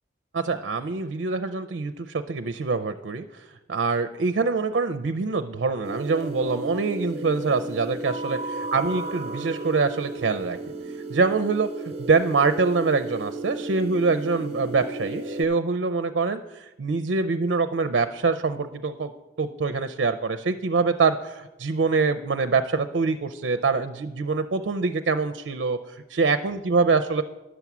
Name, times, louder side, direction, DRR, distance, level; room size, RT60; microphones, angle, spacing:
voice 1, 0.3-10.6 11.1-19.1 19.4-27.2, right 4 dB, 75° right, 10 dB, 0.5 m, -25 dB
sound 1, 5.8-15.4, right 2 dB, 35° right, 1.0 m, -34 dB
11.0 x 7.0 x 6.0 m, 1.1 s
head